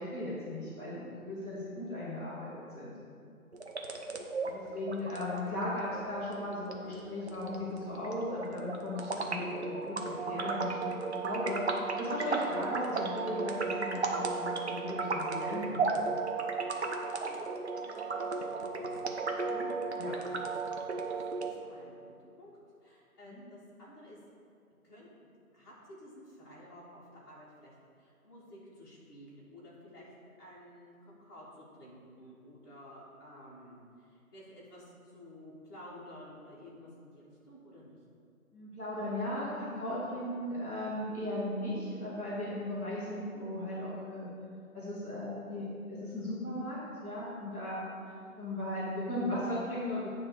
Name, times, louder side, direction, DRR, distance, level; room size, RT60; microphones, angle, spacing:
voice 1, 0.0-2.9 4.4-10.9 11.2-15.8 19.4-19.7 20.0-20.1 23.3-23.4 38.5-44.3 44.7-47.8 48.4-50.2, left 1 dB, 10° right, -17 dB, 0.8 m, -37 dB
sound 1, 3.5-21.5, right 4 dB, 45° right, 0.8 m, -35 dB
voice 2, 17.0-19.6 21.0-22.1 22.4-22.5 22.8-24.2 24.8-25.1 25.5-30.1 30.4-38.0 48.2-48.3, equal, 15° left, -10 dB, 1.6 m, -53 dB
9.2 x 3.6 x 6.4 m, 2.4 s
figure-of-eight pair, 165°, 45 cm